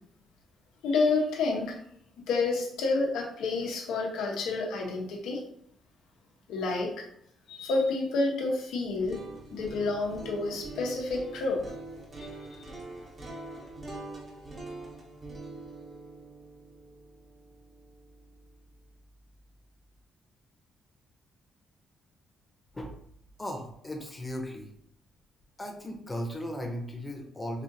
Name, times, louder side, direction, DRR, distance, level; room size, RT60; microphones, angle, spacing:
voice 1, 0.8-1.8 2.3-5.4 6.5-7.0 7.5-9.2 9.5-11.6, left 3 dB, 85° left, 0 dB, 0.9 m, -29 dB
sound 1, 8.9-18.9, right 2 dB, 35° right, 0.9 m, -44 dB
voice 2, 23.4-24.7 25.6-27.6, equal, 20° left, 2 dB, 0.8 m, -36 dB
4.2 x 2.6 x 2.6 m, 0.69 s
cardioid pair, 90°, 0 cm